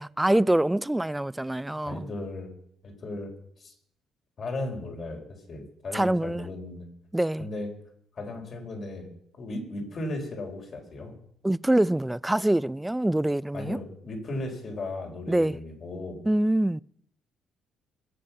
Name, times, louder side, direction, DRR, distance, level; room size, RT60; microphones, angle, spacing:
voice 1, 0.0-2.1 5.9-6.5 7.1-7.5 11.4-13.8 15.3-15.6 16.3-16.8, right 1 dB, 10° right, 0.4 m, -25 dB
voice 2, 1.9-2.5 2.8-3.3 3.6-3.7 4.4-5.2 5.5-6.9 7.4-7.7 8.2-9.1 9.3-11.1 13.5-16.2, left 2 dB, 50° left, 4.6 m, -36 dB
21.5 x 7.6 x 5.9 m
hypercardioid pair, 55°, 0 cm